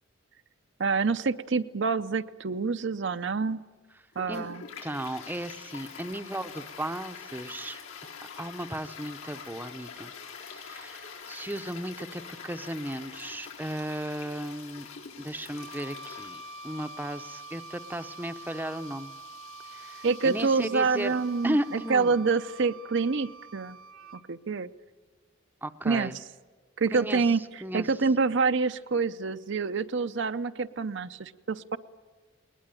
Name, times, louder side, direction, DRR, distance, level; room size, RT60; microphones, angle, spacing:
voice 1, 0.8-3.6 4.2-4.6 20.0-23.8 24.3-24.7 25.8-26.1 26.8-27.4 27.7-31.8, right 4 dB, 55° right, 10 dB, 0.6 m, -27 dB
Toilet flush, 4.1-22.1, left 6 dB, 85° left, 4.0 m, -46 dB
voice 2, 4.8-7.8 8.4-10.1 10.5-14.9 15.2-19.1 19.7-21.1 21.4-22.1 25.6-26.2 26.9-27.2 27.6-27.9, right 1 dB, 10° right, 9 dB, 0.7 m, -35 dB
Wind instrument woodwind instrument, 15.6-24.2, right 3 dB, 80° right, 1.0 m, -46 dB
20.5 x 20.0 x 9.1 m, 1.4 s
head